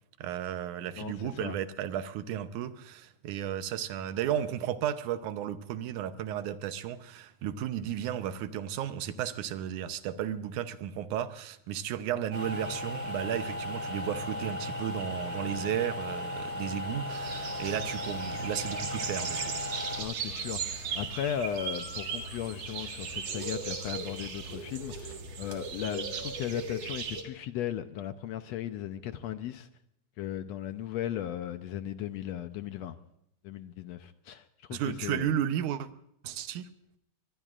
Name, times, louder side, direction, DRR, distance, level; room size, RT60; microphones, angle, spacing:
voice 1, 0.2-19.4 34.7-35.9 36.2-36.7, right 10 dB, 80° right, 2.3 m, -34 dB
voice 2, 1.0-1.6 20.0-29.7 30.2-33.0 33.4-34.4 34.7-35.3, left 10 dB, 75° left, 1.7 m, -36 dB
sound 1, 12.3-20.0, left 1 dB, 30° right, 4.7 m, -36 dB
sound 2, 17.1-27.2, right 5 dB, 55° right, 2.8 m, -37 dB
24.5 x 22.0 x 2.5 m
omnidirectional pair, 3.5 m